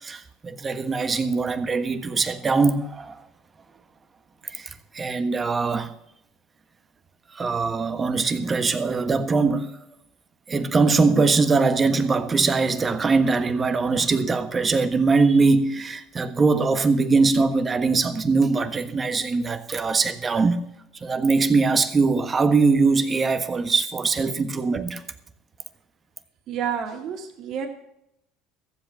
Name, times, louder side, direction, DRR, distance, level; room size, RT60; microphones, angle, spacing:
voice 1, 0.0-3.2 4.4-5.9 7.3-9.8 10.5-20.6 21.0-25.0, right 4 dB, 30° right, 1.4 m, -22 dB
voice 2, 26.5-27.7, right 8 dB, 60° right, 2.4 m, -29 dB
14.5 x 8.0 x 6.8 m
supercardioid pair, 85°, 0 cm